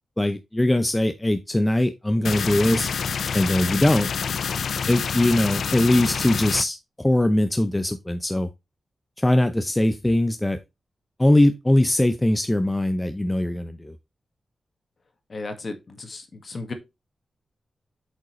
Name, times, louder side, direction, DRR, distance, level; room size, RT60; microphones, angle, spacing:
voice 1, 0.2-2.9 3.3-4.1 4.9-8.5 9.2-10.6 11.2-13.9, left 1 dB, 10° left, 0.6 m, -21 dB
sound 1, 2.2-6.6, left 6 dB, 75° left, 0.4 m, -27 dB
voice 2, 15.3-16.7, left 3 dB, 45° left, 1.6 m, -35 dB
7.8 x 5.2 x 3.1 m
wide cardioid pair, 115°, 0 cm